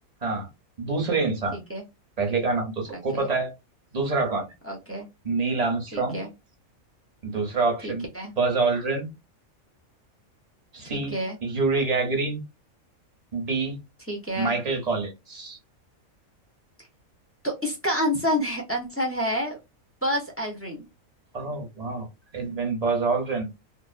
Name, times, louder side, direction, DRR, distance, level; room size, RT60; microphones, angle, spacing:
voice 1, 0.8-1.6 2.2-3.5 3.9-4.5 5.2-6.2 7.2-8.1 8.4-9.1 10.7-11.1 11.4-12.4 13.3-13.8 14.3-15.6 21.3-22.1 22.3-23.5, right 3 dB, 35° right, 0.7 m, -26 dB
voice 2, 4.6-5.1 5.9-6.3 7.8-8.3 10.9-11.4 14.1-14.6 17.4-19.6 20.0-20.9, equal, 15° left, 0.5 m, -28 dB
2.6 x 2.0 x 2.4 m
omnidirectional pair, 1.5 m